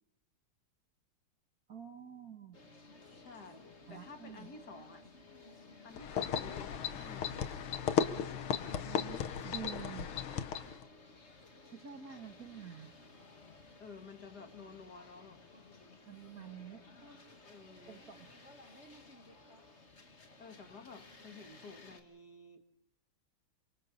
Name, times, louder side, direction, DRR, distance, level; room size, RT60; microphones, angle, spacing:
voice 1, 1.7-2.6 3.9-4.5 6.2-6.3 8.9-10.1 11.7-12.9 16.1-17.2 17.9-18.3, right 8 dB, 45° right, 7 dB, 1.8 m, -48 dB
sound 1, 2.5-22.0, left 3 dB, 30° left, 2.3 m, -57 dB
voice 2, 3.1-5.0 5.8-7.5 13.4-13.5 13.8-15.4 17.4-18.0 20.4-22.8, left 4 dB, 50° left, 6 dB, 2.4 m, -52 dB
sound 2, 6.0-10.8, left 8 dB, 80° left, 2.0 m, -35 dB
28.5 x 26.0 x 4.2 m, 0.75 s
omnidirectional pair, 2.3 m